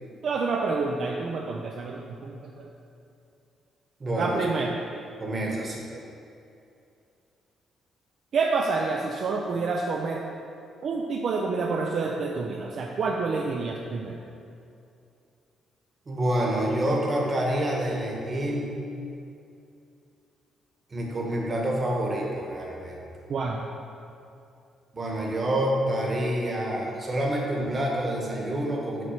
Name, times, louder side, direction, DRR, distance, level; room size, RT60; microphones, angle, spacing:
voice 1, 0.2-2.7 4.2-4.8 8.3-10.2 10.8-14.2 23.3-23.6, right 4 dB, 60° right, 0 dB, 0.4 m, -28 dB
voice 2, 4.0-4.4 5.2-5.8 16.1-18.8 20.9-23.0 24.9-29.0, right 1 dB, 35° right, -2 dB, 1.2 m, -27 dB
6.1 x 3.1 x 5.7 m, 2.6 s
cardioid pair, 90°, 0 cm